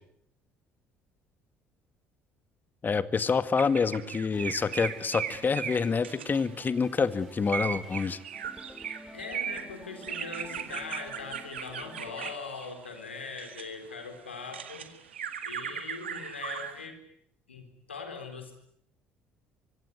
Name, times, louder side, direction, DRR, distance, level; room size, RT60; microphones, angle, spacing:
voice 1, 2.8-8.2, left 5 dB, 30° left, 14 dB, 1.8 m, -27 dB
sound 1, 3.5-6.8 7.4-13.7 14.1-16.8, right 8 dB, 85° right, 1.9 m, -37 dB
sound 2, 4.3-12.3, equal, ahead, 4.1 m, -51 dB
voice 2, 9.1-14.9 15.4-17.0 17.5-18.5, left 4 dB, 85° left, 6 dB, 4.1 m, -41 dB
24.5 x 24.0 x 9.5 m, 0.69 s
figure-of-eight pair, 55°, 6 cm